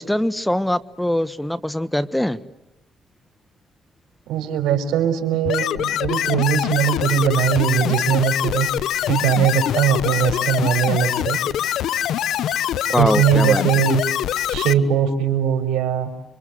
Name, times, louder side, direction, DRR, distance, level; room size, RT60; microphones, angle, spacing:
voice 1, 0.0-2.4 12.9-13.6, left 1 dB, 5° left, 15 dB, 1.3 m, -22 dB
voice 2, 4.3-11.4 11.7-11.8 13.0-14.0 14.5-16.1, right 9 dB, 90° right, 7 dB, 5.0 m, -20 dB
sound 1, 5.5-14.7, left 11 dB, 75° left, 1.1 m, -23 dB
30.0 x 25.0 x 7.9 m, 0.95 s
cardioid pair, 90°, 0 cm